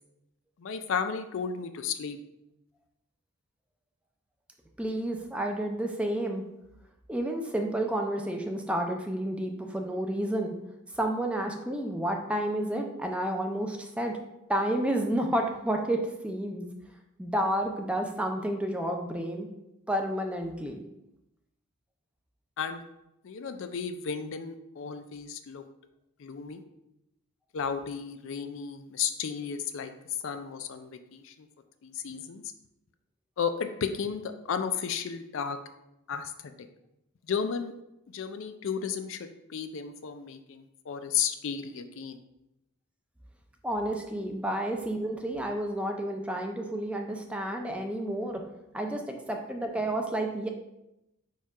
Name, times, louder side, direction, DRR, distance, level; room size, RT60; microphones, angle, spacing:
voice 1, 0.6-2.2 22.6-22.8 23.2-25.7 26.2-26.6 27.5-29.9 30.2-31.5 31.8-32.4 33.4-35.6 36.1-36.7 37.2-37.7 38.1-42.2, left 7 dB, 60° left, 9 dB, 0.4 m, -33 dB
voice 2, 4.8-6.4 7.1-10.5 10.9-14.2 14.5-16.6 17.2-19.5 19.9-20.8 43.6-48.4 48.7-50.5, right 1 dB, 5° right, 3 dB, 0.4 m, -30 dB
4.4 x 2.3 x 4.7 m, 0.88 s
head